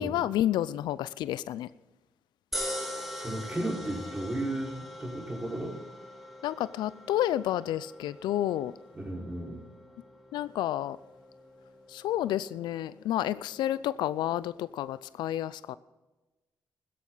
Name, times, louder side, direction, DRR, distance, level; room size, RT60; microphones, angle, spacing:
voice 1, 0.0-1.7 6.4-8.7 10.3-11.0 11.9-15.8, left 12 dB, 85° left, 17 dB, 0.4 m, -30 dB
sound 1, 2.5-14.9, equal, ahead, 3.5 m, -43 dB
voice 2, 2.9-5.8 8.9-9.6, right 1 dB, 20° right, -1 dB, 4.9 m, -34 dB
15.5 x 13.5 x 4.0 m, 1.1 s
supercardioid pair, 60°, 7 cm